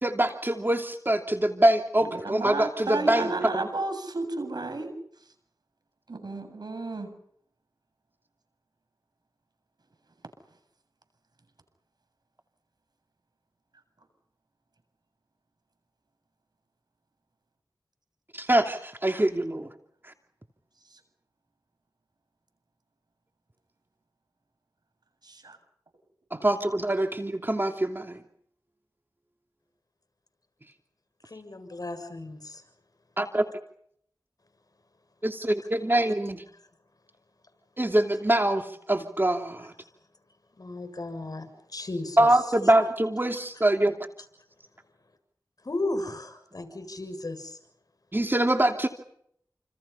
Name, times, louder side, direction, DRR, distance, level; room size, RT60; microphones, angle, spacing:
voice 1, 0.0-3.3 18.4-19.7 26.3-28.2 33.2-33.4 35.2-36.4 37.8-39.7 42.2-44.0 48.1-48.9, right 1 dB, 30° right, 5 dB, 2.8 m, -24 dB
voice 2, 2.0-4.9 6.1-7.1 20.9-21.0 25.2-25.6, right 2 dB, 70° right, 8 dB, 7.8 m, -32 dB
voice 3, 31.3-32.6 40.6-41.5 41.7-42.3 45.7-47.6, left 2 dB, 60° left, 9 dB, 7.1 m, -35 dB
29.5 x 28.0 x 5.7 m, 0.68 s
wide cardioid pair, 50°, 7 cm